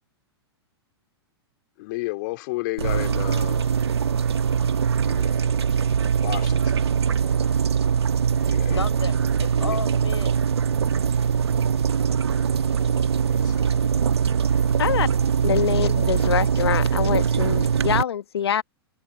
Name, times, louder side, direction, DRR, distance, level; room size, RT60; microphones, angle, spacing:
voice 1, 1.8-3.7 5.0-6.8 8.4-8.8 9.6-9.8 13.3-13.8, left 23 dB, 45° left, 3.6 m, -33 dB
sound 1, 2.8-18.0, right 7 dB, 75° right, 1.7 m, -22 dB
voice 2, 8.5-10.5, left 4 dB, 85° left, 5.6 m, -34 dB
voice 3, 15.4-18.6, left 8 dB, 70° left, 1.5 m, -24 dB
figure-of-eight pair, 105°, 14 cm